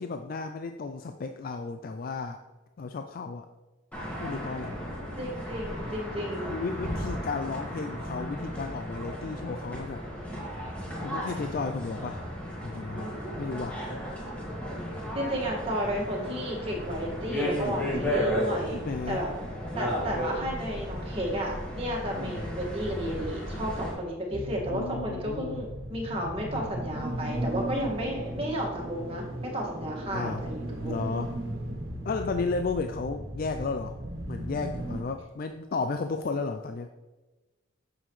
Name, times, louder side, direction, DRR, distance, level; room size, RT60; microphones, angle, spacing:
voice 1, 0.0-2.4 2.8-3.5 4.2-4.8 6.5-10.0 11.0-12.3 12.6-13.1 13.4-13.8 18.7-19.2 22.1-22.5 24.7-25.6 30.1-30.4 30.8-31.3 32.0-33.9 34.3-36.9, left 4 dB, 45° left, 7 dB, 0.4 m, -33 dB
sound 1, 3.9-23.9, equal, 5° left, 2.2 m, -34 dB
voice 2, 5.2-6.6 15.1-18.8 19.1-19.3 19.8-31.2, equal, 30° right, -2 dB, 2.0 m, -32 dB
sound 2, 24.3-35.0, right 1 dB, 85° right, 1.4 m, -36 dB
9.0 x 7.0 x 3.2 m, 1.1 s
head